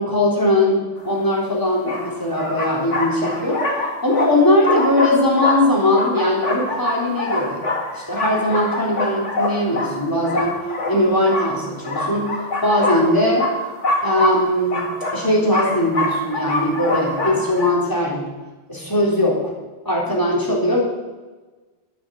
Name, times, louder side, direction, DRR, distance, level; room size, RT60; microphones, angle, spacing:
voice 1, 0.0-3.6 4.0-7.6 7.9-10.6 10.9-12.3 12.6-13.5 14.0-14.9 15.1-18.3 18.7-19.5 19.8-20.8, left 1 dB, 15° left, -4 dB, 3.8 m, -20 dB
sound 1, 1.1-1.2 1.8-17.7, left 2 dB, 85° left, 2.3 m, -25 dB
11.0 x 10.5 x 6.5 m, 1.2 s
omnidirectional pair, 1.2 m